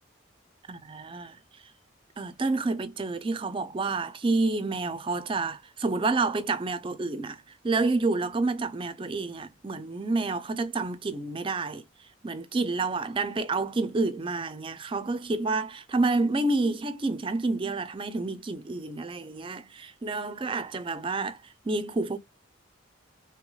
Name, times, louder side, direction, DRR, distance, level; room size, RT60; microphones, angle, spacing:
voice 1, 0.7-1.4 2.2-11.9 12.2-22.2, right 3 dB, 25° right, 0.4 m, -29 dB
3.3 x 3.0 x 2.3 m
head